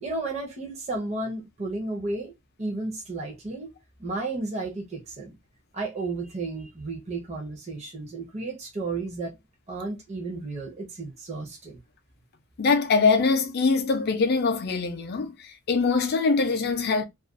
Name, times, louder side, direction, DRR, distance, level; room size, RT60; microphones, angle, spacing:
voice 1, 0.0-2.3 2.6-5.4 5.7-9.4 9.7-11.8, right 3 dB, 30° right, 0.6 m, -33 dB
voice 2, 12.6-17.0, left 4 dB, 45° left, 0.4 m, -23 dB
2.4 x 2.2 x 2.4 m
head